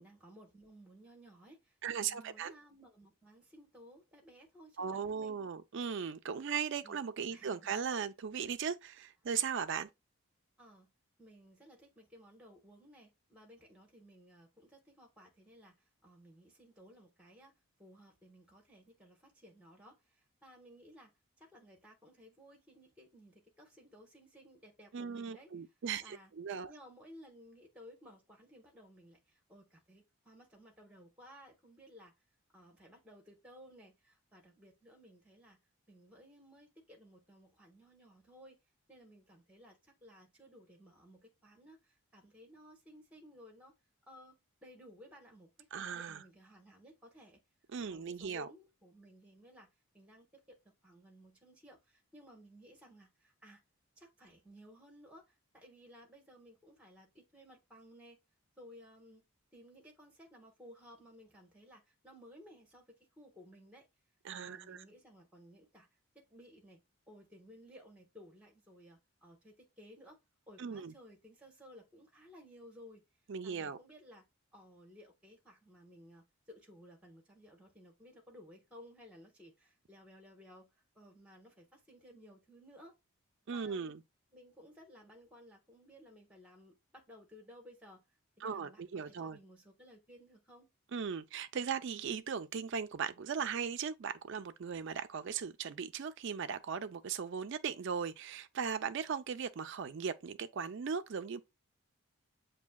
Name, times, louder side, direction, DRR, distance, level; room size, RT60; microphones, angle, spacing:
voice 1, 0.0-5.4 6.8-7.0 7.3-7.7 10.6-10.9 11.2-21.1 21.4-25.5 26.0-26.3 26.7-32.1 32.5-35.6 35.9-38.6 38.9-43.7 44.1-47.4 47.8-49.7 49.9-53.6 54.0-58.2 58.6-59.2 59.5-63.9 64.3-65.9 66.1-70.2 70.5-73.0 73.4-74.3 74.5-82.9 83.5-83.9 84.3-88.0 88.4-90.7, equal, 5° right, 1.1 m, -58 dB
voice 2, 1.8-2.5 4.8-9.9 24.9-26.7 45.7-46.2 47.7-48.5 64.2-64.8 70.6-70.9 73.3-73.8 83.5-84.0 88.4-89.4 90.9-101.4, right 6 dB, 55° right, 0.4 m, -38 dB
7.2 x 2.7 x 2.2 m
head